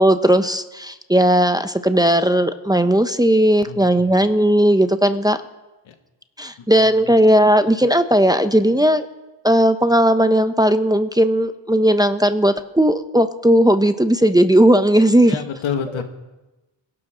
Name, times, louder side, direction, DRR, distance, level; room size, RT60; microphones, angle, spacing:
voice 1, 0.0-5.4 6.4-9.1 9.4-15.4, right 1 dB, 10° right, 9 dB, 1.0 m, -16 dB
voice 2, 3.6-4.2 5.8-5.9 6.6-7.2 15.3-16.0, left 7 dB, 75° left, 5 dB, 2.2 m, -30 dB
21.5 x 12.0 x 4.0 m, 1.1 s
supercardioid pair, 60°, 48 cm